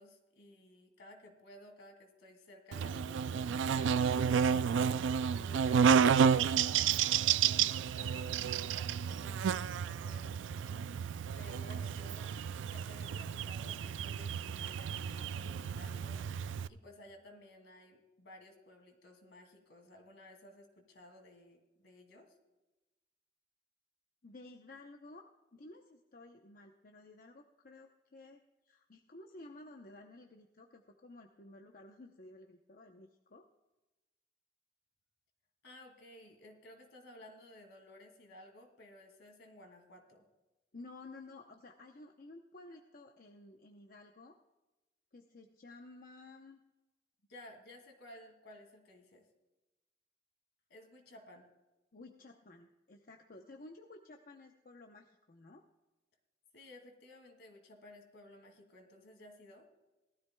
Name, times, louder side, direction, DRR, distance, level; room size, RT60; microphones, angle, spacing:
voice 1, 0.0-4.8 5.3-10.9 11.4-12.3 12.7-16.2 16.7-22.3 35.6-40.2 47.3-49.3 50.7-51.5 56.5-59.7, left 1 dB, 70° left, 4 dB, 2.4 m, -56 dB
Buzz, 2.7-16.7, right 7 dB, 85° right, 0.3 m, -31 dB
voice 2, 24.2-28.4 28.7-33.5 40.7-44.4 45.1-46.6 51.9-55.6, left 2 dB, 50° left, 3 dB, 0.8 m, -54 dB
18.5 x 13.5 x 2.2 m, 1.1 s
head